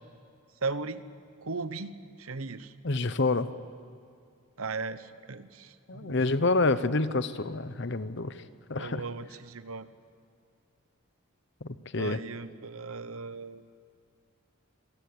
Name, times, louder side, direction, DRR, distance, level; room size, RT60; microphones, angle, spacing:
voice 1, 0.6-1.0 1.4-2.7 4.6-6.2 8.8-9.9 12.0-13.6, right 4 dB, 80° right, 13 dB, 1.1 m, -37 dB
voice 2, 2.8-3.5 5.9-8.4 8.7-9.0 11.6-12.2, left 3 dB, 55° left, 13 dB, 0.9 m, -28 dB
26.5 x 17.5 x 8.7 m, 2.3 s
head